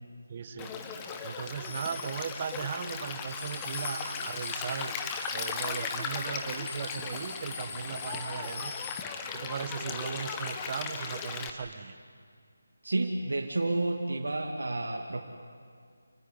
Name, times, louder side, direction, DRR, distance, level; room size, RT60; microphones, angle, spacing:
voice 1, 0.3-4.9 5.3-8.8 9.3-12.0, right 6 dB, 25° right, 10 dB, 1.2 m, -37 dB
Stream, 0.6-11.5, left 5 dB, 10° left, 1.1 m, -37 dB
sound 1, 1.6-9.0, left 5 dB, 35° left, 1.1 m, -43 dB
voice 2, 12.8-15.2, right 2 dB, 85° right, 1 dB, 2.6 m, -30 dB
28.0 x 19.5 x 9.9 m, 2.1 s
figure-of-eight pair, 175°, 0 cm